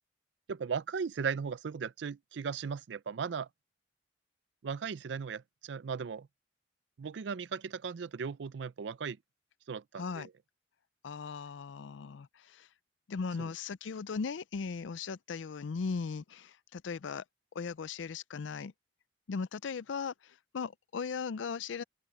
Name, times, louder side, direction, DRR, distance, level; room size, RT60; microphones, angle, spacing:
voice 1, 0.5-3.5 4.6-6.3 7.0-9.2 9.7-10.3 13.4-13.5, right 6 dB, 75° right, 0.4 m, -37 dB
voice 2, 10.0-10.3 11.0-12.7 13.1-17.2 17.5-18.7 19.3-21.8, left 5 dB, 85° left, 0.5 m, -38 dB
head